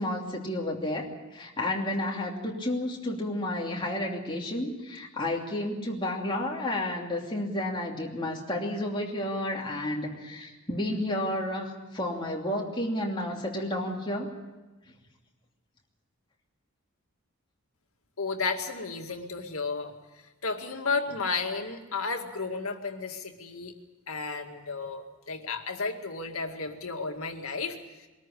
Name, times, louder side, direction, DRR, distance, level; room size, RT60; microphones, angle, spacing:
voice 1, 0.0-14.3, left 1 dB, 20° left, -1 dB, 2.8 m, -31 dB
voice 2, 18.2-19.9 20.4-23.7 24.1-27.8, left 4 dB, 75° left, 4 dB, 2.1 m, -33 dB
22.0 x 13.5 x 10.0 m, 1.2 s
head